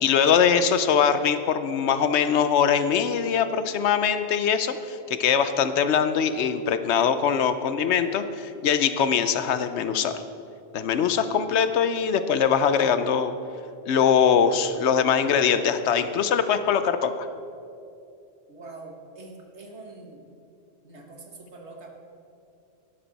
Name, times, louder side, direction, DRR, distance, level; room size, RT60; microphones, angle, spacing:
voice 1, 0.0-10.2 10.7-13.3 13.9-17.3, left 7 dB, 80° left, 11 dB, 1.0 m, -22 dB
voice 2, 18.5-20.2 20.8-21.9, right 3 dB, 80° right, 2 dB, 1.7 m, -44 dB
12.5 x 11.0 x 4.1 m, 2.6 s
omnidirectional pair, 1.1 m